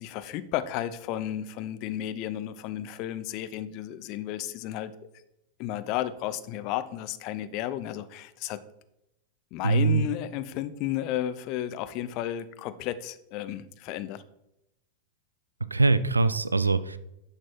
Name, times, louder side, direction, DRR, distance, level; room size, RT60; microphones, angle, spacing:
voice 1, 0.0-4.9 5.6-8.6 9.5-14.2, left 12 dB, 40° left, 13 dB, 0.7 m, -33 dB
voice 2, 9.6-10.1 15.7-17.0, right 3 dB, 80° right, 16 dB, 0.5 m, -23 dB
10.5 x 6.3 x 4.5 m, 0.87 s
figure-of-eight pair, 90°, 0 cm